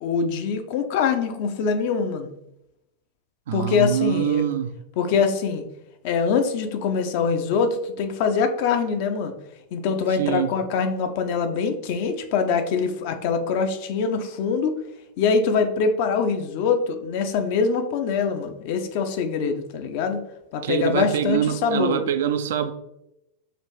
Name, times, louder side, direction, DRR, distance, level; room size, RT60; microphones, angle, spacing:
voice 1, 0.0-2.3 3.5-4.4 5.0-5.6 6.0-9.3 9.7-14.8 15.2-20.2 20.5-22.0, left 5 dB, 50° left, 0.5 m, -24 dB
voice 2, 3.5-4.7 10.2-10.5 20.6-22.7, right 9 dB, 60° right, 0.3 m, -24 dB
5.1 x 2.6 x 2.9 m
figure-of-eight pair, 90°, 0 cm